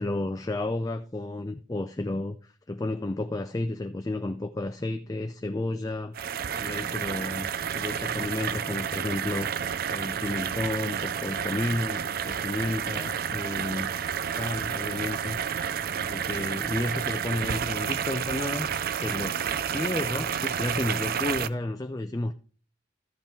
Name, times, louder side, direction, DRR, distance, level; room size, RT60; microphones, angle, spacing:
voice 1, 0.0-6.1 6.6-13.9 14.4-15.4 16.0-22.3, left 2 dB, 20° left, 0.5 m, -32 dB
sound 1, 6.1-21.5, right 8 dB, 50° right, 0.5 m, -30 dB
13.5 x 5.7 x 4.4 m
head